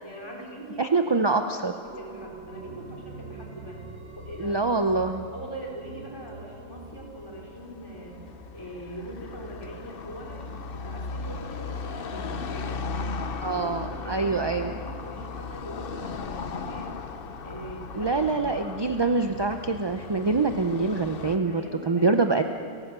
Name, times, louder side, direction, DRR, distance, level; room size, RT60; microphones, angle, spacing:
voice 1, 0.0-3.8 4.2-4.9 5.3-8.2 8.5-12.8 13.5-17.0 17.4-18.9 21.0-22.4, right 1 dB, 15° left, -1 dB, 4.1 m, -42 dB
voice 2, 0.8-1.7 4.4-5.2 13.4-14.7 18.0-22.4, right 3 dB, 30° right, 6 dB, 0.5 m, -25 dB
sound 1, 1.8-11.2 11.5-11.6, right 3 dB, 55° right, 2.6 m, -46 dB
Car passing by / Traffic noise roadway noise, 6.8-21.4, left 4 dB, 50° left, 1.0 m, -37 dB
30.0 x 15.0 x 6.8 m, 2.3 s
omnidirectional pair, 1.4 m